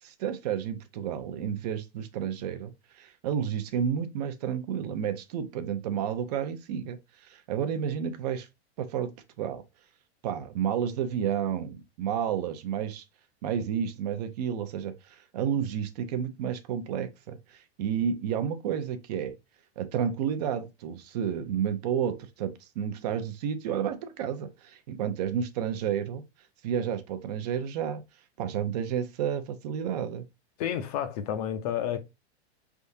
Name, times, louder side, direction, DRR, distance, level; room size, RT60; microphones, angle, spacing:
voice 1, 0.0-2.7 3.0-8.5 8.8-9.6 10.2-13.0 13.4-19.4 19.8-26.2 26.6-28.0 28.4-30.2, right 8 dB, 40° right, 0.5 m, -31 dB
voice 2, 30.6-32.0, left 10 dB, 35° left, 0.5 m, -30 dB
4.5 x 3.5 x 2.6 m
supercardioid pair, 170°, 33 cm